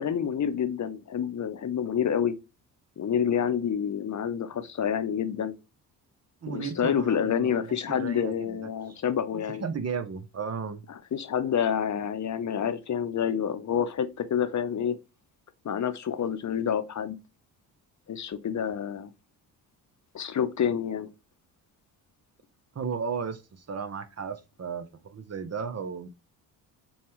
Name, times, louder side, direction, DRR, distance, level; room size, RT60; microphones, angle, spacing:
voice 1, 0.0-2.4 3.0-5.5 6.5-9.6 10.9-15.0 15.6-17.1 18.1-19.1 20.1-21.1, left 8 dB, 40° left, 0.9 m, -28 dB
voice 2, 6.4-8.7 9.3-10.9 22.7-26.1, right 6 dB, 35° right, 0.9 m, -35 dB
6.9 x 2.3 x 3.1 m
hypercardioid pair, 45°, 46 cm